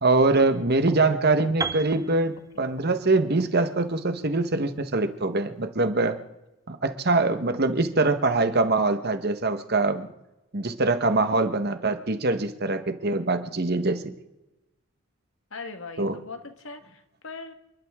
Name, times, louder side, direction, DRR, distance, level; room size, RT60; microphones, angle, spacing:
voice 1, 0.0-6.2 6.7-10.1 10.5-14.1 16.0-16.2, right 3 dB, 50° right, 9 dB, 1.3 m, -23 dB
Piano, 1.6-5.5, right 4 dB, 15° right, 0.4 m, -37 dB
voice 2, 15.5-17.5, left 4 dB, 65° left, 7 dB, 1.6 m, -40 dB
29.5 x 12.0 x 3.7 m, 0.98 s
head